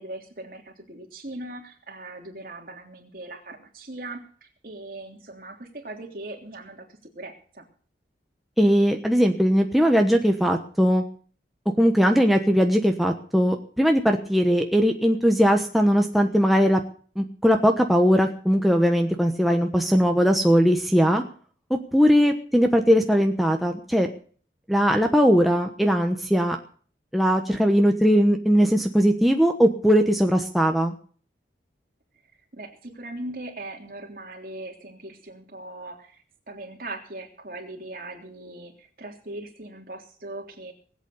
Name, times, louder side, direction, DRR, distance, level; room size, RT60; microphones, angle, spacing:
voice 1, 0.0-7.7 32.5-40.7, right 2 dB, 50° right, 2 dB, 3.3 m, -40 dB
voice 2, 8.6-11.0 11.8-16.8 17.2-21.2 21.7-24.1 24.7-26.6 27.1-30.9, equal, ahead, 3 dB, 1.1 m, -20 dB
20.0 x 8.4 x 6.9 m, 0.44 s
head